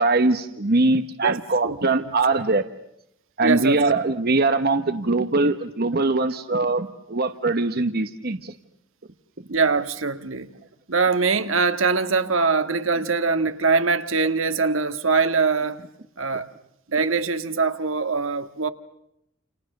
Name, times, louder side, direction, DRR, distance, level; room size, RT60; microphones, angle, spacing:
voice 1, 0.0-2.6 3.4-8.5, right 3 dB, 50° right, 1.1 m, -22 dB
voice 2, 3.4-3.8 9.5-10.5 10.9-15.8 16.2-16.5 16.9-18.7, right 4 dB, 75° right, 1.8 m, -22 dB
29.5 x 29.5 x 6.6 m
head